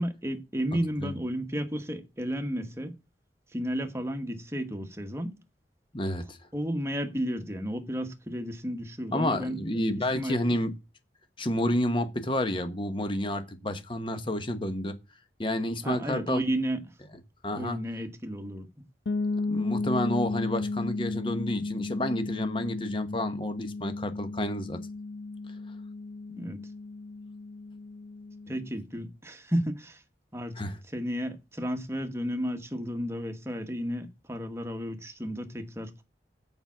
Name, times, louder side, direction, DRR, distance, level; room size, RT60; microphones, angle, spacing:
voice 1, 0.0-2.9 3.5-5.3 6.5-9.6 10.1-10.4 15.8-16.9 17.5-18.7 26.3-26.6 28.5-30.0 30.3-30.6 30.9-36.0, equal, 15° right, 1.2 m, -32 dB
voice 2, 5.9-6.4 9.1-10.7 11.4-15.0 15.4-16.4 17.4-17.8 19.5-24.8 30.5-30.8, left 1 dB, 30° left, 1.1 m, -30 dB
sound 1, 19.1-28.7, left 3 dB, 80° left, 0.7 m, -34 dB
7.0 x 5.3 x 7.2 m
head